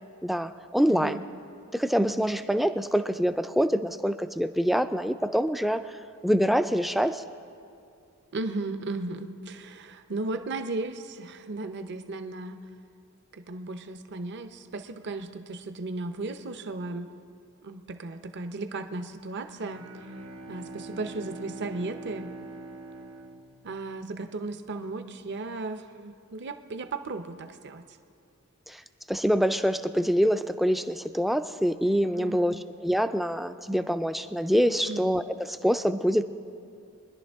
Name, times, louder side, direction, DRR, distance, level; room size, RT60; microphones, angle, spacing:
voice 1, 0.2-1.2 1.7-6.0 6.2-7.2 28.7-28.8 29.1-36.2, equal, ahead, 10 dB, 0.3 m, -25 dB
voice 2, 0.9-1.2 8.3-12.6 13.4-17.1 17.6-20.2 20.5-22.3 23.6-27.8 32.1-32.6 34.9-35.1, right 2 dB, 50° right, 9 dB, 0.7 m, -35 dB
Bowed string instrument, 19.5-24.4, right 3 dB, 70° right, 1.1 m, -44 dB
23.5 x 11.0 x 3.5 m, 2.5 s
head